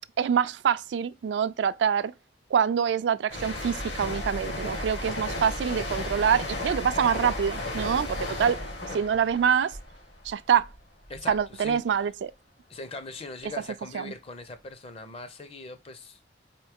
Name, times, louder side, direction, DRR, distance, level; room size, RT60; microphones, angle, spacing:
voice 1, 0.2-2.1 2.5-8.6 8.9-9.7 10.3-10.7 11.3-12.3 13.9-14.1, right 7 dB, 75° right, 0.3 m, -25 dB
sound 1, 3.3-10.8 11.1-11.4, left 1 dB, 75° left, 2.0 m, -34 dB
voice 2, 11.1-12.1 12.7-16.2, left 3 dB, 35° left, 0.6 m, -41 dB
4.5 x 3.0 x 3.4 m
head